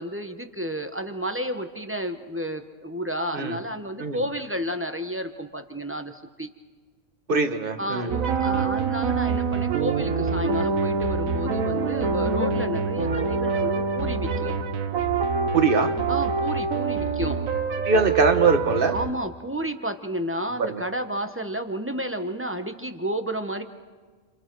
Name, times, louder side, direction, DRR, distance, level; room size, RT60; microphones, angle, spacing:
voice 1, 0.0-6.5 7.8-14.6 16.1-17.4 18.9-23.6, equal, 10° right, 7 dB, 1.0 m, -31 dB
voice 2, 7.3-8.1 15.5-15.9 17.8-18.9 20.6-20.8, right 4 dB, 40° right, 7 dB, 1.4 m, -22 dB
sound 1, 8.1-19.1, right 5 dB, 80° right, 1.6 m, -25 dB
29.5 x 27.5 x 4.7 m, 1.4 s
omnidirectional pair, 1.4 m